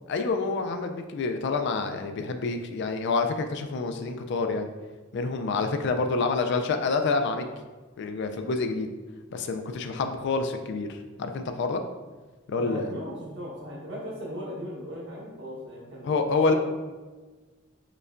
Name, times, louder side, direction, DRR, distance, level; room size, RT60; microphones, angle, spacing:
voice 1, 0.1-4.7 5.1-7.4 8.0-8.9 9.3-11.8 12.5-13.0 16.0-16.5, left 4 dB, 60° left, 6 dB, 0.3 m, -27 dB
voice 2, 12.6-16.1 16.5-16.6, equal, 65° right, -5 dB, 1.2 m, -37 dB
5.1 x 2.2 x 2.4 m, 1.3 s
head